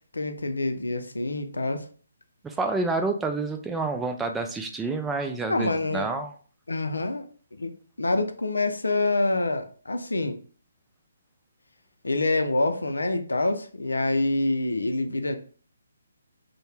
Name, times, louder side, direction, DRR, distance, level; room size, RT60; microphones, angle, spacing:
voice 1, 0.1-1.8 5.5-6.1 6.7-7.2 7.5-7.7 8.0-10.4 12.0-15.4, left 2 dB, 85° left, 6 dB, 0.5 m, -26 dB
voice 2, 2.4-6.3, right 3 dB, 10° right, 5 dB, 0.3 m, -28 dB
2.7 x 2.1 x 3.2 m, 0.42 s
figure-of-eight pair, 145°, 0 cm